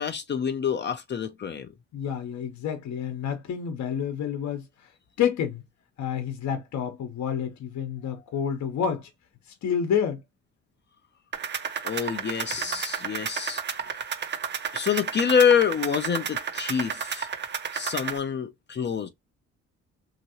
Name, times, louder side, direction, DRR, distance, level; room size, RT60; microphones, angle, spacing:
voice 1, 0.0-1.7 11.8-13.6 14.7-17.3 17.7-19.1, left 7 dB, 35° left, 0.6 m, -26 dB
voice 2, 1.9-4.6 5.2-5.6 6.0-9.1 9.6-10.2, left 8 dB, 65° left, 1.0 m, -29 dB
sound 1, 11.3-18.2, right 7 dB, 35° right, 0.6 m, -32 dB
2.9 x 2.6 x 2.8 m
cardioid pair, 90°, 30 cm